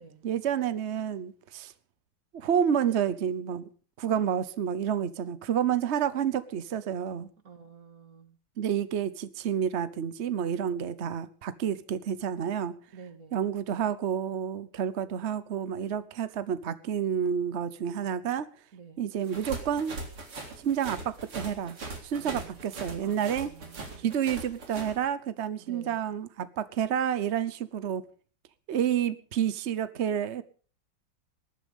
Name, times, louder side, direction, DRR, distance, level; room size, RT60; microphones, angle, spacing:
voice 1, 0.2-1.7 2.3-3.6 4.0-7.3 8.6-12.7 13.3-18.5 19.0-19.9 20.6-21.8 22.0-23.5 24.0-28.0 28.7-30.4, right 8 dB, 60° right, 0.7 m, -29 dB
voice 2, 7.4-8.4 12.9-13.5 18.7-19.1 22.1-24.2 25.6-26.1, right 6 dB, 40° right, 2.2 m, -50 dB
sound 1, 19.2-24.9, right 3 dB, 90° right, 4.5 m, -40 dB
19.5 x 11.5 x 5.2 m
omnidirectional pair, 2.3 m